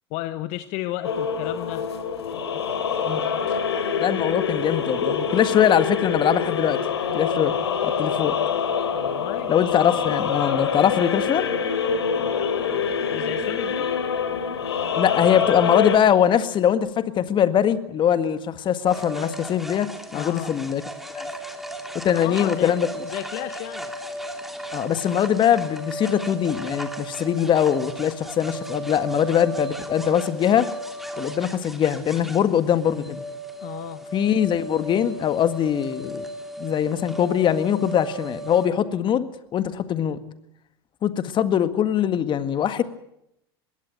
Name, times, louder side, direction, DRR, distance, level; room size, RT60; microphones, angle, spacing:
voice 1, 0.1-1.9 2.5-2.6 3.5-3.6 5.5-5.6 8.9-9.5 12.1-12.5 13.0-13.9 20.1-20.5 22.1-23.9 33.6-34.0, left 15 dB, 55° left, 12 dB, 1.1 m, -33 dB
sound 1, 1.0-16.0, left 6 dB, 85° left, 3.0 m, -25 dB
voice 2, 4.0-6.8 7.1-7.5 7.8-8.3 9.5-11.5 15.0-20.8 21.2-21.3 22.0-22.9 24.7-30.7 31.2-33.2 34.1-36.3 36.6-40.2 41.0-42.8, left 9 dB, 35° left, 12 dB, 1.8 m, -22 dB
sound 2, 18.9-38.7, right 1 dB, ahead, 2.9 m, -35 dB
21.0 x 17.0 x 9.1 m, 0.79 s
hypercardioid pair, 90°, 13 cm